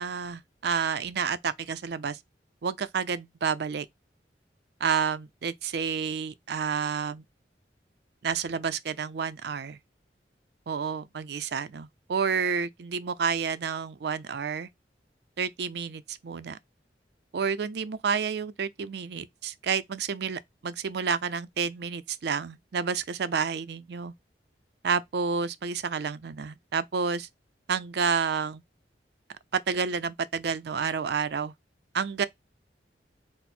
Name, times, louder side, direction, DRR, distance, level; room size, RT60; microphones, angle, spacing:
voice 1, 0.0-2.2 2.6-3.9 4.8-7.2 8.2-9.8 10.7-14.7 15.4-16.6 17.3-24.1 24.8-27.3 27.7-28.6 29.5-31.5 31.9-32.3, right 6 dB, 65° right, 0.4 m, -30 dB
4.3 x 2.0 x 4.2 m
head